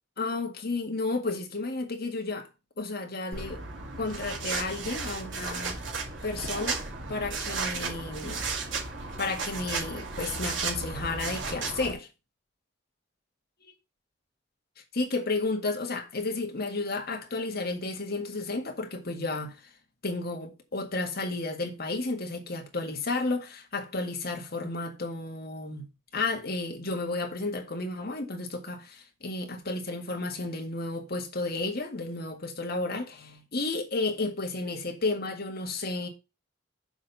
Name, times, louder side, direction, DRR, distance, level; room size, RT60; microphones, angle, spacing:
voice 1, 0.2-2.5 2.8-3.6 4.0-5.8 6.2-8.5 9.2-12.1 15.0-19.6 20.0-25.8 26.1-36.1, left 3 dB, 55° left, 1.8 m, -32 dB
sound 1, 3.3-11.9, right 4 dB, 80° right, 2.4 m, -34 dB
7.0 x 4.3 x 6.8 m
head